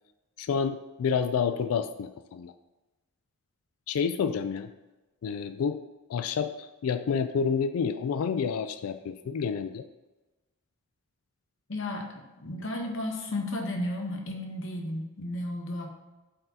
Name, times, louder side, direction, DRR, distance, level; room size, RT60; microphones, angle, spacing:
voice 1, 0.4-2.5 3.9-4.7 5.2-5.8 6.1-9.8, left 6 dB, 75° left, 10 dB, 0.3 m, -29 dB
voice 2, 11.7-15.9, left 1 dB, 60° left, 2 dB, 1.0 m, -33 dB
7.6 x 4.4 x 2.8 m, 1.1 s
head